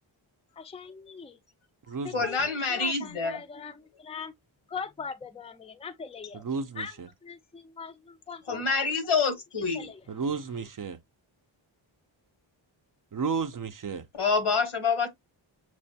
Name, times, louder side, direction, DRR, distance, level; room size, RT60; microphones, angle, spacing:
voice 1, 0.6-1.4 2.0-4.3 4.7-6.4 6.8-6.9 7.2-8.8 9.7-10.0, left 5 dB, 15° left, 0.4 m, -41 dB
voice 2, 2.1-3.4 8.5-9.9 14.2-15.1, left 4 dB, 80° left, 1.2 m, -27 dB
voice 3, 6.3-7.1 10.1-11.0 13.1-14.1, right 5 dB, 45° right, 0.5 m, -32 dB
6.1 x 2.1 x 2.7 m
wide cardioid pair, 80°, 48 cm